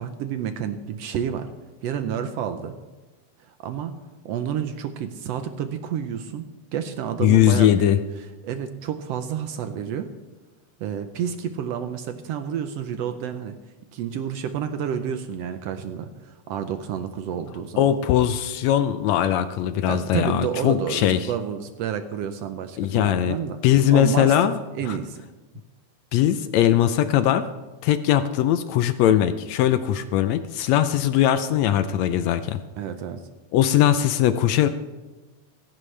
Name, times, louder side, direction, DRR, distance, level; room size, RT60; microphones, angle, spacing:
voice 1, 0.0-1.5 1.8-2.8 3.5-3.9 4.2-6.4 6.7-7.9 8.4-10.1 10.8-13.6 13.9-17.8 19.9-23.6 23.9-24.5 24.7-25.2 32.8-33.2, right 8 dB, 75° right, 9 dB, 1.5 m, -30 dB
voice 2, 7.2-8.0 17.8-21.2 22.8-23.4 23.6-24.6 24.9-25.0 26.1-27.5 27.8-32.6 33.5-34.7, left 11 dB, 75° left, 11 dB, 1.7 m, -20 dB
16.5 x 15.5 x 3.3 m, 1.2 s
omnidirectional pair, 3.5 m